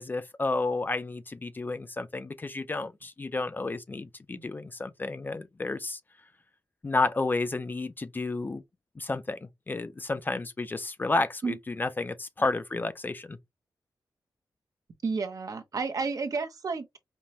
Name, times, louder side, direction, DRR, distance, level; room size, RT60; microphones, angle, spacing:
voice 1, 0.0-6.0 6.8-8.6 9.0-13.4, left 3 dB, 25° left, 0.4 m, -31 dB
voice 2, 15.0-17.0, right 4 dB, 50° right, 0.7 m, -31 dB
5.3 x 2.1 x 2.9 m
wide cardioid pair, 155°, 8 cm